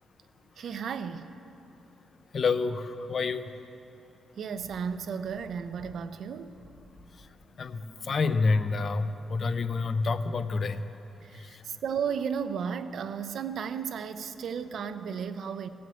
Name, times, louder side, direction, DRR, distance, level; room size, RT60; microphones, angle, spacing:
voice 1, 0.6-1.3 4.4-6.6 11.2-15.7, right 7 dB, 60° right, 0.6 m, -34 dB
voice 2, 2.3-3.4 7.6-10.8, left 4 dB, 40° left, 0.5 m, -27 dB
sound 1, 4.4-5.9 6.3-10.6, left 1 dB, 25° left, 2.8 m, -55 dB
17.0 x 7.8 x 7.8 m
wide cardioid pair, 150°, 0 cm